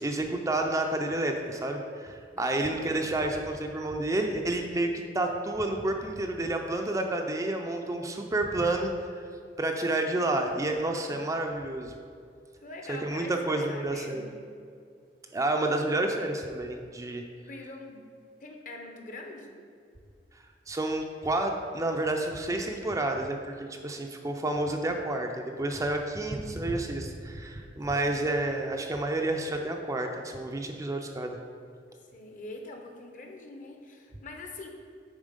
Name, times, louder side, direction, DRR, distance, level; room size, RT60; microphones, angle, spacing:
voice 1, 0.0-9.2 9.6-11.9 12.9-14.2 15.3-17.2 20.7-31.4, right 2 dB, 20° right, 3 dB, 0.4 m, -30 dB
voice 2, 2.4-2.9 10.2-11.2 12.6-14.3 17.5-18.0 18.4-19.6 27.8-28.2 32.1-34.7, left 2 dB, 45° left, 3 dB, 0.8 m, -44 dB
7.2 x 4.3 x 5.1 m, 2.3 s
head